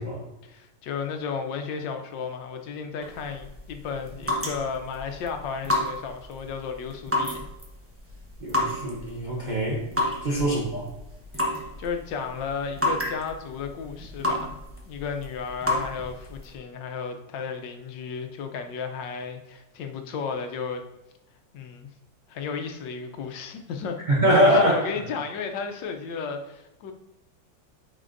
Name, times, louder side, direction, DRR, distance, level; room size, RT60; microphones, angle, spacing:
voice 1, 0.4-7.5 10.3-10.6 11.4-14.6 14.8-20.8 21.5-21.9 22.3-24.0 24.3-26.9, left 5 dB, 90° left, 6 dB, 1.4 m, -33 dB
sound 1, 3.0-16.5, left 1 dB, 10° right, 0.7 m, -31 dB
voice 2, 8.4-9.8 10.2-10.9 24.1-24.8, right 1 dB, 45° right, -3 dB, 0.6 m, -23 dB
9.0 x 4.3 x 2.5 m, 0.91 s
omnidirectional pair, 1.9 m